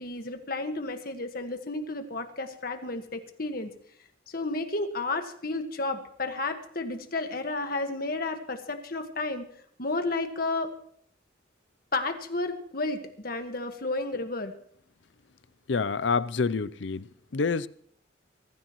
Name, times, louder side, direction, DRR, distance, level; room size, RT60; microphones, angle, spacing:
voice 1, 0.0-3.7 4.3-9.4 9.8-10.7 11.9-14.5, left 2 dB, 50° left, 1.6 m, -32 dB
voice 2, 15.7-17.7, left 4 dB, 70° left, 0.6 m, -28 dB
23.5 x 14.5 x 3.1 m
head